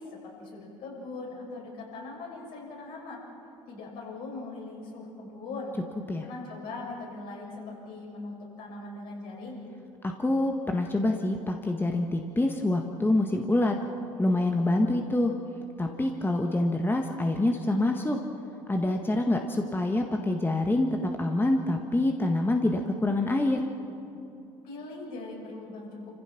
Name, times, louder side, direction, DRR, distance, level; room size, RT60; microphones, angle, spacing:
voice 1, 0.0-3.2 3.7-5.8 6.2-9.6 24.6-26.2, left 3 dB, 60° left, -3 dB, 6.9 m, -40 dB
voice 2, 10.2-13.7 14.2-15.3 15.8-18.2 18.7-23.7, left 2 dB, 15° left, 3 dB, 1.7 m, -26 dB
30.0 x 15.5 x 6.0 m, 2.9 s
hypercardioid pair, 65°, 17 cm